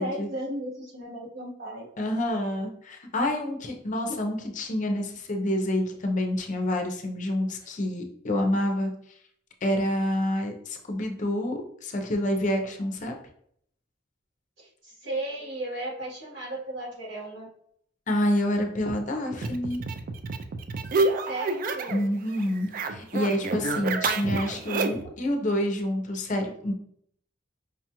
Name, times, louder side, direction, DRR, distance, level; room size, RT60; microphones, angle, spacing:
voice 1, 0.0-1.9 4.1-4.2 14.6-17.5 21.2-22.1, right 1 dB, 75° right, -6 dB, 1.4 m, -35 dB
voice 2, 2.0-8.9 9.6-13.1 18.1-19.8 21.9-26.7, left 1 dB, 45° left, 3 dB, 0.6 m, -28 dB
sound 1, 19.4-22.1 22.3-25.1, right 3 dB, 50° right, 0.3 m, -29 dB
5.0 x 2.3 x 2.9 m, 0.68 s
head